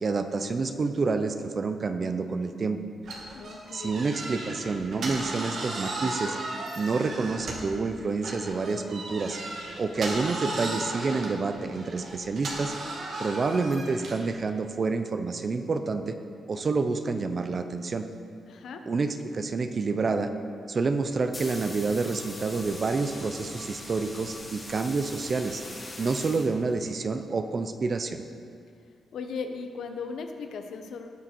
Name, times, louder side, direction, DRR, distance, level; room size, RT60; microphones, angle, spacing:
voice 1, 0.0-2.8 3.7-6.4 6.8-9.4 9.8-12.7 13.2-16.2 16.5-18.0 18.9-20.3 20.7-25.6 26.0-28.2, right 4 dB, 30° right, 8 dB, 0.6 m, -28 dB
sound 1, 3.0-7.8 8.2-14.3, right 2 dB, 50° right, 1.8 m, -36 dB
voice 2, 3.3-4.0 18.5-18.9 29.1-31.2, left 5 dB, 65° left, 6 dB, 0.9 m, -37 dB
sound 2, 21.0-27.0, left 1 dB, 15° left, 1.5 m, -42 dB
18.0 x 6.5 x 4.5 m, 2.3 s
wide cardioid pair, 175°, 0 cm